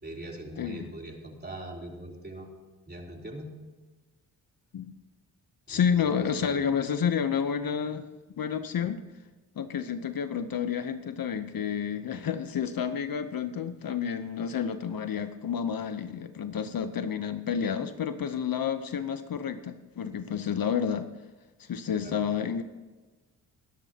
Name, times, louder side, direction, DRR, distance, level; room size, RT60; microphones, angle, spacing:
voice 1, 0.0-2.5 2.9-3.5 5.7-6.7 22.0-22.2, right 1 dB, 25° right, 0 dB, 3.5 m, -42 dB
voice 2, 5.7-8.1 8.4-9.0 9.6-21.1 21.6-22.6, left 7 dB, 55° left, 11 dB, 0.9 m, -30 dB
23.5 x 10.5 x 2.9 m, 1.2 s
cardioid pair, 60°, 43 cm